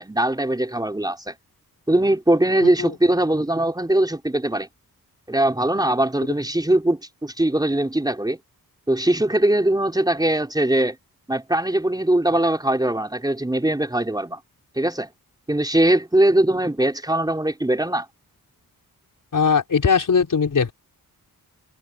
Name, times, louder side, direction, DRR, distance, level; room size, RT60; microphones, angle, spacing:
voice 1, 0.0-1.3 1.9-4.7 5.3-8.4 8.9-11.0 11.3-14.4 14.8-15.1 15.5-18.1, right 1 dB, 10° right, 4.3 m, -21 dB
voice 2, 19.3-20.7, left 6 dB, 55° left, 4.6 m, -20 dB
wide cardioid pair, 170°, 37 cm